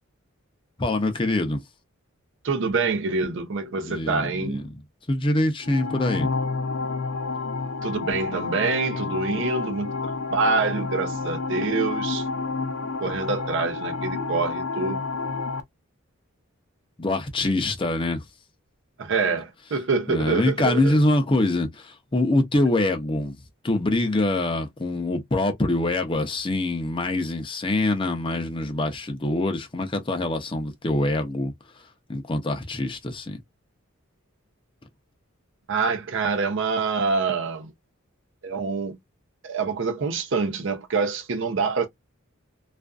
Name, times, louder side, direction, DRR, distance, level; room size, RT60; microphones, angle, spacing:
voice 1, 0.8-1.6 3.8-4.7 5.1-6.3 17.0-18.2 20.1-23.4 23.6-31.5 32.1-33.4, left 2 dB, 25° left, 0.5 m, -24 dB
voice 2, 2.4-4.6 7.8-9.9 10.3-12.3 13.0-15.0 19.0-21.0 35.7-37.7 38.4-39.0 39.4-41.9, right 4 dB, 60° right, 0.6 m, -26 dB
sound 1, 5.6-15.6, left 4 dB, 85° left, 0.5 m, -29 dB
2.5 x 2.4 x 2.3 m
head